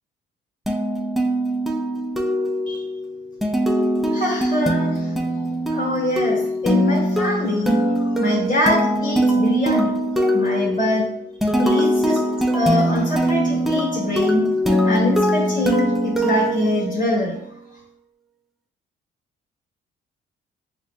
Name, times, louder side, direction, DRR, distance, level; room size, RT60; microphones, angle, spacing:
sound 1, 0.7-17.3, equal, ahead, 0.4 m, -22 dB
voice 1, 4.1-5.1 5.7-10.0 10.3-11.1 11.6-12.2 12.5-14.5 14.8-17.4, left 1 dB, 45° left, -4 dB, 1.4 m, -24 dB
6.3 x 2.1 x 2.2 m, 0.68 s
cardioid pair, 90°, 20 cm